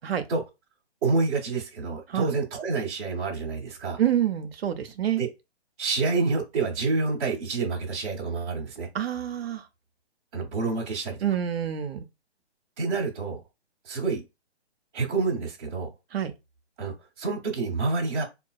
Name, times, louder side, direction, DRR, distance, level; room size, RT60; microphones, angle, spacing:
voice 1, 1.0-4.0 5.2-5.3 5.8-8.9 10.3-11.2 12.8-13.4 13.8-14.2 14.9-15.9 16.8-18.2, right 4 dB, 10° right, 0.5 m, -28 dB
voice 2, 4.0-5.2 8.9-9.7 11.2-12.0 16.1-16.3, right 10 dB, 60° right, 0.5 m, -27 dB
3.8 x 2.4 x 2.2 m
hypercardioid pair, 150°, 34 cm